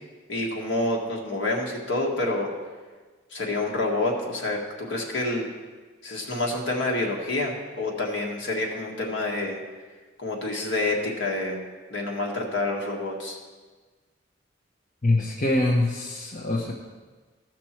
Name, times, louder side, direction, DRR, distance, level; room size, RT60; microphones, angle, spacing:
voice 1, 0.3-2.5 3.3-5.5 6.0-9.6 10.2-11.6 11.9-13.4, left 2 dB, 65° left, -1 dB, 1.8 m, -28 dB
voice 2, 15.0-16.7, left 2 dB, 40° left, -3 dB, 0.9 m, -24 dB
15.5 x 6.0 x 4.5 m, 1.4 s
head